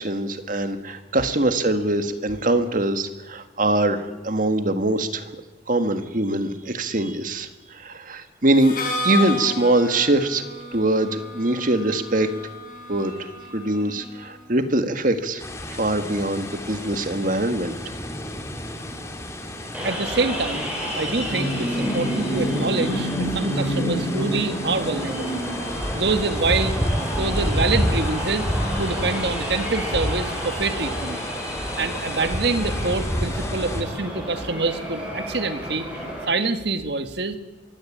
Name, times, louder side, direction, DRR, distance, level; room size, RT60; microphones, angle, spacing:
voice 1, 0.0-5.3 5.7-8.7 9.0-12.3 12.9-15.4 15.7-17.7, right 2 dB, 45° right, 8 dB, 1.8 m, -23 dB
Harmonica, 8.6-14.3, left 2 dB, 45° left, 6.7 m, -32 dB
sound 1, 15.4-33.8, equal, 15° left, 2.3 m, -30 dB
sound 2, 19.7-36.3, equal, 10° right, 7.5 m, -29 dB
voice 2, 19.8-20.7 21.0-25.4 25.9-26.7 27.2-28.5 28.8-31.2 31.8-35.9 36.3-37.4, right 3 dB, 60° right, 9 dB, 1.7 m, -26 dB
23.0 x 16.5 x 8.7 m, 1.2 s
head